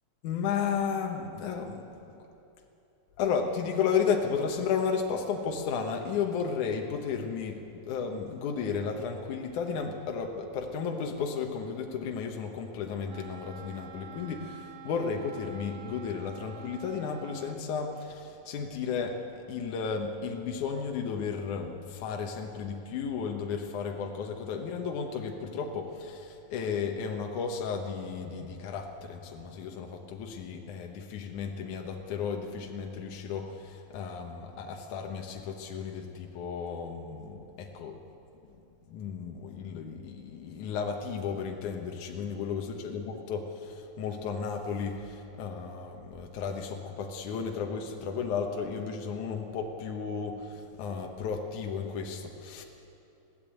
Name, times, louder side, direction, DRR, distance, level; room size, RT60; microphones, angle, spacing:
voice 1, 0.2-1.9 2.1-2.2 3.2-38.0 38.9-52.6, left 6 dB, 75° left, 2 dB, 2.6 m, -33 dB
Wind instrument woodwind instrument, 13.1-17.7, right 7 dB, 70° right, 1.4 m, -47 dB
21.5 x 16.0 x 9.0 m, 2.9 s
omnidirectional pair, 3.6 m